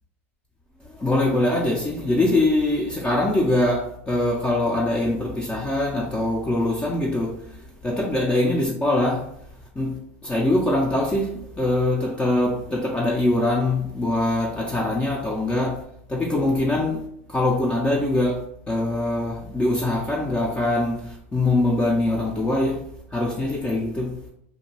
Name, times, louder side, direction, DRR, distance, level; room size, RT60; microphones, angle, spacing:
voice 1, 0.8-9.3 9.8-15.8 16.1-17.0 17.3-22.9 23.1-24.2, left 2 dB, 15° left, -3 dB, 0.5 m, -23 dB
2.6 x 2.2 x 3.0 m, 0.72 s
hypercardioid pair, 115°, 7 cm